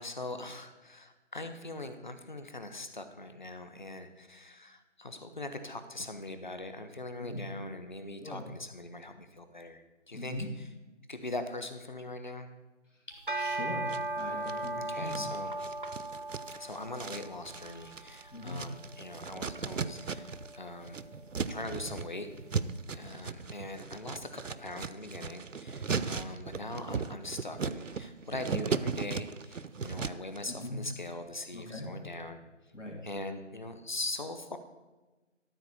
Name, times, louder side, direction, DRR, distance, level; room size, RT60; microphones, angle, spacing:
voice 1, 0.0-10.7 11.1-12.5 14.8-15.7 16.6-20.3 20.6-21.0 21.5-22.3 22.9-32.4 33.0-34.6, left 2 dB, 40° left, 9 dB, 0.9 m, -41 dB
voice 2, 10.1-10.5 13.3-13.9 14.2-15.3 18.3-18.6 30.5-30.8 31.5-31.9 32.7-33.0, left 1 dB, 80° left, 0 dB, 2.7 m, -40 dB
sound 1, 13.1-22.5, right 2 dB, 45° right, 0.5 m, -39 dB
sound 2, 13.9-14.7 15.1-20.6 20.8-30.4, right 5 dB, 85° right, 0.6 m, -37 dB
13.0 x 4.3 x 6.9 m, 1.2 s
figure-of-eight pair, 165°, 37 cm